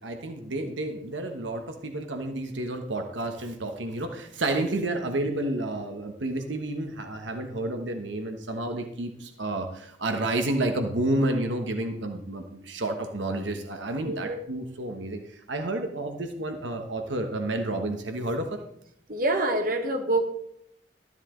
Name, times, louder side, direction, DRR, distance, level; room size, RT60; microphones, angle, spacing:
voice 1, 0.0-18.5, right 1 dB, 75° right, 5 dB, 1.2 m, -30 dB
voice 2, 14.0-14.4 19.1-20.3, right 2 dB, 45° right, 4 dB, 1.5 m, -26 dB
13.0 x 10.5 x 3.8 m, 0.72 s
head